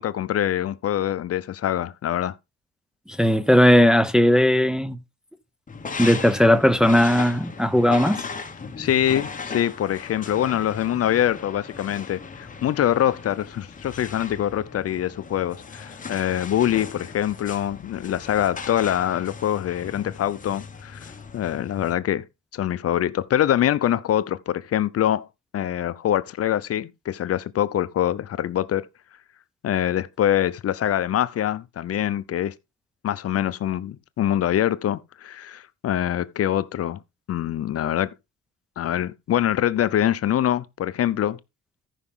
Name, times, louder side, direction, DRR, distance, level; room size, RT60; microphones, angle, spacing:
voice 1, 0.0-2.3 8.8-21.1 21.3-22.2 22.5-25.3 25.5-28.9 29.6-32.5 33.0-37.0 37.3-38.1 38.8-41.4, left 11 dB, 55° left, 0.7 m, -24 dB
voice 2, 3.1-5.0 6.0-8.2, equal, ahead, 0.6 m, -17 dB
sound 1, 5.7-21.9, left 5 dB, 25° left, 1.5 m, -37 dB
14.0 x 5.9 x 3.7 m
cardioid pair, 110°, 29 cm